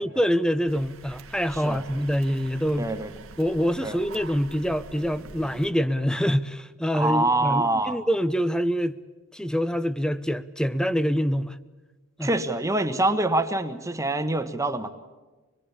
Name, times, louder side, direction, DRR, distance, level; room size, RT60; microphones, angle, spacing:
voice 1, 0.0-2.9 3.4-9.0 9.3-11.6 12.2-12.3, equal, 5° left, 0.7 m, -25 dB
sound 1, 0.7-5.7, right 3 dB, 75° right, 1.4 m, -45 dB
voice 2, 2.8-3.1 3.8-4.0 6.9-8.0 12.2-14.9, right 2 dB, 15° right, 1.2 m, -25 dB
25.5 x 22.0 x 8.5 m
head